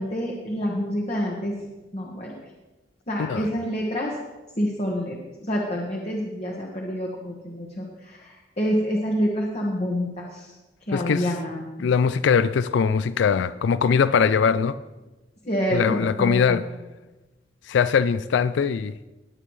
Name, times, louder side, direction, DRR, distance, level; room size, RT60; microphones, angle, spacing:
voice 1, 0.0-1.5 1.9-2.3 3.1-4.1 4.6-10.5 10.9-11.9 15.4-16.6, equal, 35° left, -2 dB, 1.5 m, -27 dB
voice 2, 10.9-11.3 11.8-14.8 15.7-16.6 17.7-19.0, left 6 dB, 80° left, 14 dB, 0.3 m, -21 dB
19.5 x 8.8 x 3.2 m, 1.1 s
head